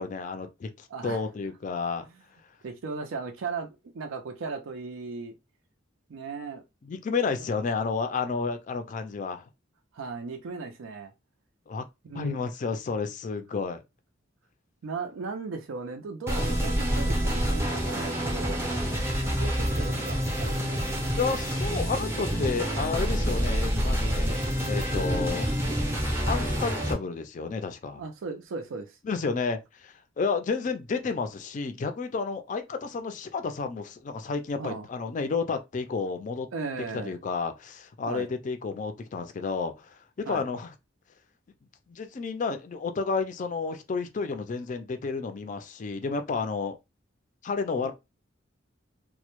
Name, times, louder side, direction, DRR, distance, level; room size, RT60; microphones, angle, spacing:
voice 1, 0.0-2.0 6.8-9.5 11.7-11.9 12.1-13.8 18.8-19.2 21.1-25.5 26.3-28.0 29.0-36.5 36.9-40.7 41.9-46.8 47.4-47.9, left 4 dB, 40° left, 0.3 m, -31 dB
voice 2, 0.9-1.2 2.6-5.3 6.1-6.6 9.9-11.1 12.0-12.4 14.8-18.7 19.2-20.7 28.0-29.0 34.6-34.9 36.5-37.2 38.1-38.3 40.3-40.4 47.8-47.9, right 4 dB, 80° right, 0.4 m, -37 dB
sound 1, 16.3-26.9, equal, 15° right, 0.5 m, -27 dB
2.1 x 2.0 x 2.9 m
head